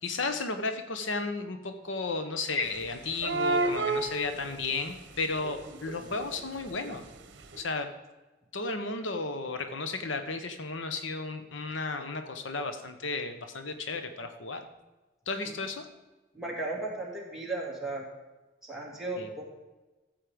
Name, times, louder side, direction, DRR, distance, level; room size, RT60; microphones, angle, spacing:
voice 1, 0.0-7.0 7.6-7.9 8.5-14.7 15.3-15.9 19.2-19.3, left 3 dB, 75° left, 8 dB, 1.0 m, -33 dB
sound 1, 2.7-2.8 3.1-4.9 5.2-7.2 7.5-7.6, right 2 dB, 60° right, 1.2 m, -31 dB
voice 2, 16.3-18.0 18.6-19.5, right 2 dB, ahead, -3 dB, 2.7 m, -35 dB
14.0 x 7.6 x 5.1 m, 1.1 s
head